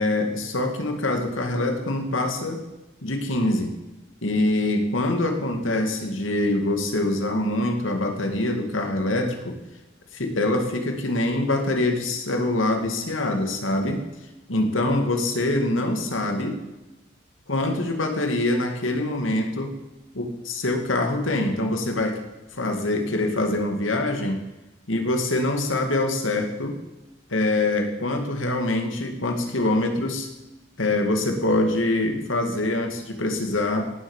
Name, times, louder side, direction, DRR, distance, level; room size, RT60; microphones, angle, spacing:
voice 1, 0.0-2.6 3.0-3.7 4.2-9.6 10.1-14.0 14.5-16.6 17.5-19.7 20.1-22.2 22.5-24.4 24.9-26.8 27.3-30.3 30.8-33.8, left 2 dB, 85° left, 5 dB, 2.4 m, -24 dB
17.5 x 8.1 x 7.3 m, 1.0 s
head